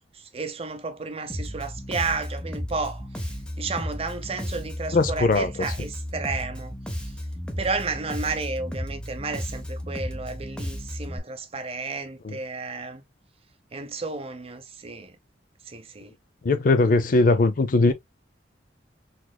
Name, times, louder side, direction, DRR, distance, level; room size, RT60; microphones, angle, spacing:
voice 1, 0.1-3.1 3.6-7.1 7.6-13.0 13.7-15.2 15.7-16.1, right 4 dB, 35° right, 0.7 m, -32 dB
Bass guitar, 1.3-11.2, equal, 5° left, 0.6 m, -34 dB
voice 2, 4.9-5.5 12.2-12.4 16.4-17.9, left 3 dB, 45° left, 0.5 m, -20 dB
4.2 x 2.9 x 2.2 m
head